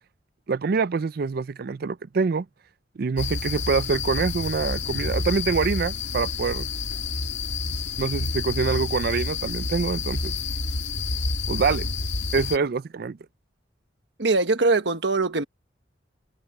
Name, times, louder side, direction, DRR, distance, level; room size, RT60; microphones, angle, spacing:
voice 1, 0.5-2.5 3.0-6.7 8.0-10.3 11.5-11.9 12.3-13.2, right 4 dB, 55° right, 0.4 m, -25 dB
sound 1, 3.2-12.6, left 4 dB, 75° left, 2.0 m, -29 dB
voice 2, 14.2-15.4, right 3 dB, 70° right, 1.4 m, -22 dB
head